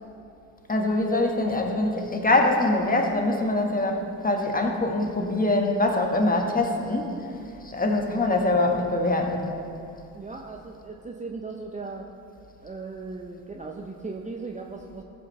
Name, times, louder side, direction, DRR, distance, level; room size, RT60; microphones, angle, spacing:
voice 1, 0.7-7.2 7.6-9.5, left 2 dB, 20° left, 2 dB, 1.7 m, -24 dB
voice 2, 10.1-12.1 12.6-15.0, right 3 dB, 15° right, 2 dB, 0.8 m, -37 dB
15.5 x 7.8 x 3.4 m, 2.7 s
hypercardioid pair, 60°, 46 cm